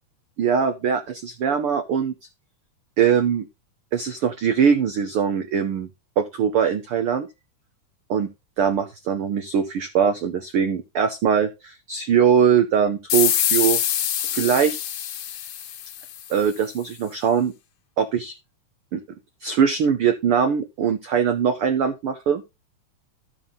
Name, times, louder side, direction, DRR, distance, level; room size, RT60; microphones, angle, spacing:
voice 1, 0.4-2.1 3.0-3.5 3.9-5.9 6.2-7.3 8.1-8.3 8.6-13.8 14.2-14.8 16.3-17.5 18.0-18.3 18.9-19.0 19.4-22.4, right 7 dB, 85° right, 8 dB, 1.2 m, -21 dB
sound 1, 13.1-16.4, left 10 dB, 70° left, 2.1 m, -25 dB
13.0 x 5.9 x 3.8 m, 0.25 s
omnidirectional pair, 3.6 m